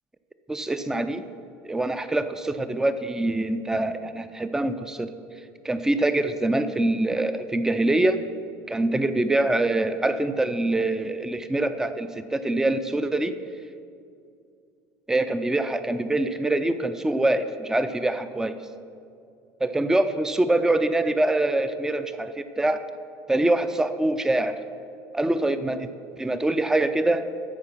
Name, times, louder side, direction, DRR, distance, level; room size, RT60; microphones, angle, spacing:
voice 1, 0.5-1.2 1.6-5.1 5.6-8.2 8.7-13.3 15.1-18.5 19.6-22.8 23.3-24.6 25.1-25.9 26.2-27.3, right 2 dB, 5° right, 10 dB, 0.5 m, -24 dB
13.5 x 4.8 x 6.0 m, 2.4 s
supercardioid pair, 110°, 7 cm